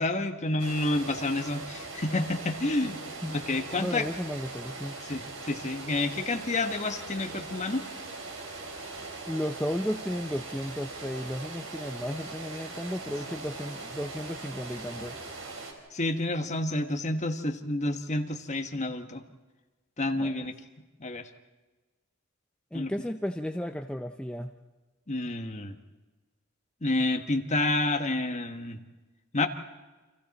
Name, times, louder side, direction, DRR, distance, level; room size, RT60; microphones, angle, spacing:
voice 1, 0.0-3.0 3.3-4.1 5.0-7.8 15.9-19.2 20.0-20.6 21.0-21.3 22.7-22.9 25.1-25.8 26.8-28.8 29.3-29.5, left 2 dB, 35° left, 6 dB, 1.4 m, -29 dB
sound 1, 0.6-15.7, right 3 dB, 70° right, 4.0 m, -41 dB
voice 2, 3.8-5.0 9.3-15.2 20.1-20.3 22.7-24.5, equal, 5° left, 5 dB, 0.6 m, -34 dB
29.5 x 25.5 x 4.2 m, 1.2 s
head